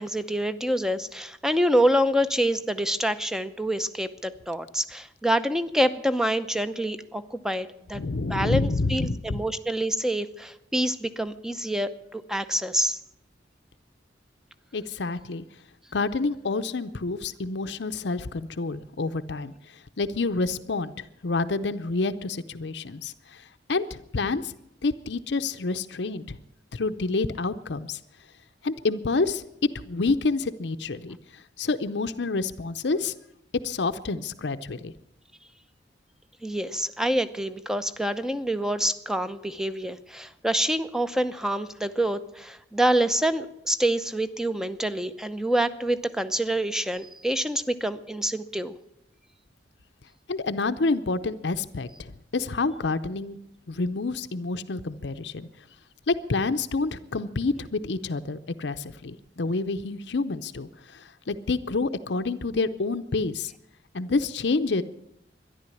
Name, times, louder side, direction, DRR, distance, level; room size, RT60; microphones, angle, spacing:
voice 1, 0.0-13.0 36.4-48.7, right 1 dB, 5° right, 11 dB, 0.7 m, -26 dB
voice 2, 7.9-9.4 14.7-15.4 15.9-19.5 20.0-23.4 23.7-24.5 24.8-26.4 26.7-28.0 28.6-33.1 33.6-34.9 50.3-53.4 53.7-55.5 56.1-63.5 63.9-64.8, left 3 dB, 65° left, 10 dB, 0.7 m, -28 dB
13.0 x 11.0 x 9.8 m, 0.81 s
head